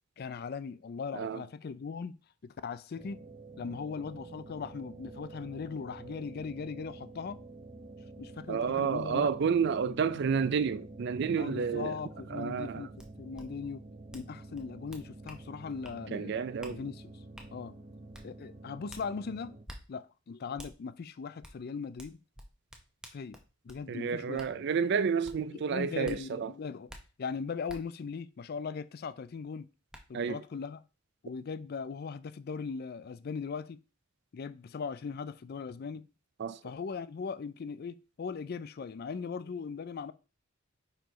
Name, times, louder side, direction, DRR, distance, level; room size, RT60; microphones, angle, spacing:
voice 1, 0.2-2.1 2.4-3.2 3.6-7.4 8.2-9.3 9.9-10.0 11.4-12.9 13.2-13.8 14.1-16.4 16.7-17.0 17.5-17.7 18.2-19.6 19.9-22.2 23.1-23.4 23.6-24.7 25.5-26.9 27.2-29.7 30.1-30.8 31.2-33.8 34.3-36.0 36.6-40.1, left 5 dB, 50° left, 0.4 m, -39 dB
sound 1, 3.0-19.7, right 2 dB, 35° right, 0.7 m, -49 dB
voice 2, 8.5-11.9 12.3-12.9 16.1-16.9 23.9-26.5 30.1-30.4 36.4-36.6, right 6 dB, 55° right, 0.4 m, -30 dB
sound 2, 13.0-13.1 13.3-13.5 14.1-14.3 14.5-15.4 15.8-16.0 16.6-16.8 17.4-17.5 18.1-18.3 18.9-19.0 19.7-19.8 20.6-20.7 21.4-21.6 22.0-23.8 24.4-24.5 25.2-25.4 26.0-26.2 26.9-27.0 27.7-27.8 29.3-29.4 29.9-30.0, equal, 5° right, 0.8 m, -48 dB
4.6 x 4.4 x 5.2 m
head